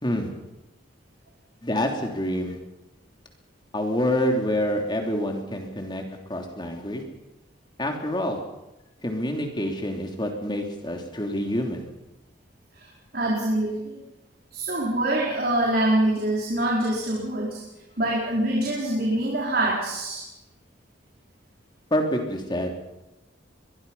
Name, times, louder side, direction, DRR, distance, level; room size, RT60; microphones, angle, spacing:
voice 1, 1.6-2.6 3.7-6.0 6.3-7.0 7.8-8.4 9.0-11.8 21.9-22.7, left 1 dB, 25° left, 2 dB, 3.2 m, -27 dB
voice 2, 12.7-14.0 14.5-17.6 18.0-20.2, right 1 dB, 55° right, -4 dB, 4.8 m, -25 dB
22.5 x 22.5 x 5.6 m, 0.96 s
head